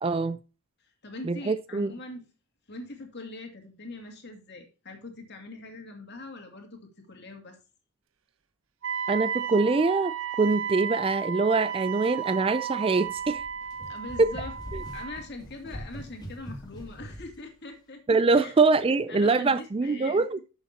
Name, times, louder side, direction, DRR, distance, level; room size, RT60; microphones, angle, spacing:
voice 1, 0.0-0.4 1.2-1.9 9.1-13.4 14.2-14.3 14.7-14.8 18.1-20.4, right 3 dB, 25° right, 0.3 m, -24 dB
voice 2, 1.0-2.3 2.7-7.6 13.9-14.5 14.9-18.5 19.1-20.2, left 2 dB, 50° left, 2.5 m, -42 dB
Wind instrument woodwind instrument, 8.8-15.3, right 8 dB, 60° right, 0.8 m, -33 dB
sound 1, 13.0-17.4, equal, 20° left, 2.4 m, -42 dB
11.5 x 7.1 x 2.7 m
head